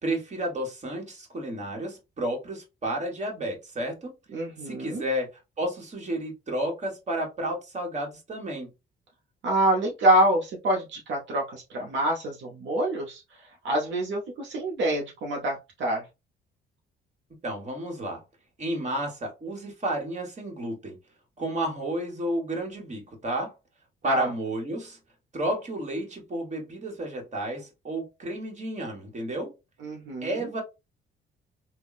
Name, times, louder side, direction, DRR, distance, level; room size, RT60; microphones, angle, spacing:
voice 1, 0.0-4.1 4.6-5.3 5.6-8.7 17.4-18.2 18.6-21.0 21.4-23.5 24.0-25.0 25.3-29.5 30.2-30.6, right 1 dB, 35° right, 1.5 m, -31 dB
voice 2, 4.3-5.0 9.4-16.1 24.0-24.3 29.8-30.4, right 1 dB, 70° right, 0.8 m, -26 dB
3.5 x 2.2 x 2.4 m
cardioid pair, 90°, 20 cm